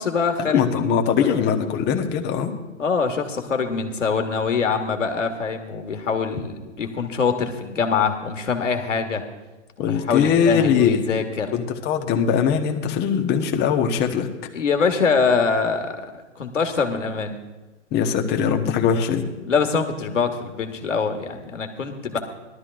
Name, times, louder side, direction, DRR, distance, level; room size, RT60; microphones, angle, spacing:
voice 1, 0.0-1.5 2.8-9.2 9.8-11.5 14.5-16.1 16.3-17.3 19.5-22.2, left 5 dB, 85° left, 5 dB, 1.7 m, -24 dB
voice 2, 0.5-2.5 9.8-11.2 11.5-14.3 17.9-19.3, left 7 dB, 30° left, 3 dB, 1.3 m, -21 dB
19.5 x 12.5 x 2.5 m, 1.1 s
hypercardioid pair, 115°, 36 cm